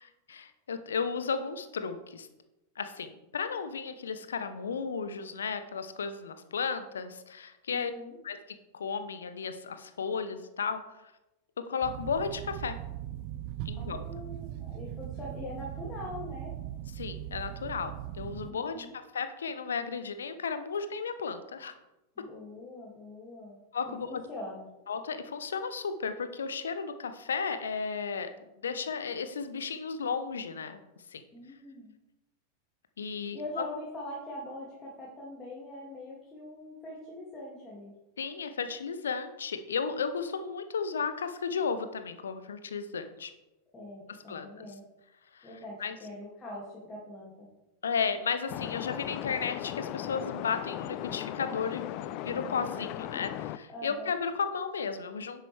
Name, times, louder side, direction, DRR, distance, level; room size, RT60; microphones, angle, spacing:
voice 1, 0.0-2.3 2.8-7.9 8.2-8.4 8.7-10.8 11.6-12.8 13.7-14.0 17.0-18.9 19.1-21.7 23.7-24.2 24.9-28.3 28.6-30.8 31.1-31.2 33.0-33.4 38.2-43.3 44.3-44.7 45.3-45.5 45.8-46.0 47.8-55.4, left 5 dB, 70° left, 10 dB, 0.9 m, -34 dB
voice 2, 7.7-8.2 13.7-16.5 18.5-18.9 22.2-23.6 23.9-24.7 31.3-31.9 33.3-37.9 43.7-44.8 45.4-47.5 53.7-54.1, left 1 dB, 15° left, -6 dB, 2.6 m, -43 dB
sound 1, 11.8-18.5, right 12 dB, 45° right, 0.4 m, -40 dB
sound 2, 48.5-53.6, left 13 dB, 40° left, 0.4 m, -37 dB
10.0 x 7.5 x 3.5 m, 0.95 s
figure-of-eight pair, 90°, 0 cm